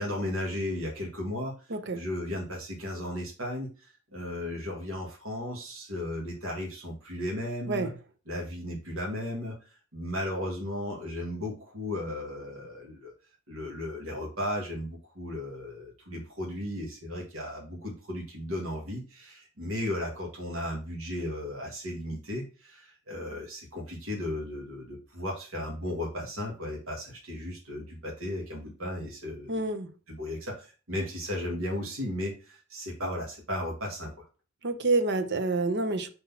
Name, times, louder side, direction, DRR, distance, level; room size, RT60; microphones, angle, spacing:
voice 1, 0.0-1.5 1.9-7.9 8.3-9.6 9.9-13.1 13.5-29.6 30.1-34.2, left 1 dB, 70° right, 1.9 m, -35 dB
voice 2, 1.7-2.0 7.7-7.9 29.5-29.9 34.6-36.1, right 3 dB, 55° right, 0.8 m, -28 dB
5.3 x 4.1 x 5.6 m
head